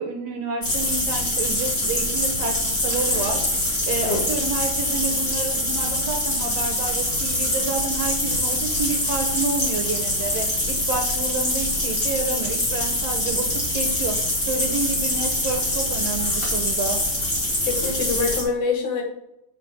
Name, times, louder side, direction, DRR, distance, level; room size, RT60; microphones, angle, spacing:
voice 1, 0.0-3.4 3.9-17.0, right 4 dB, 65° right, 3 dB, 1.8 m, -29 dB
sound 1, 0.6-18.4, left 1 dB, 30° left, 2.7 m, -24 dB
voice 2, 17.7-19.0, left 4 dB, 75° left, 2 dB, 3.0 m, -25 dB
8.5 x 5.2 x 5.0 m, 0.83 s
omnidirectional pair, 3.5 m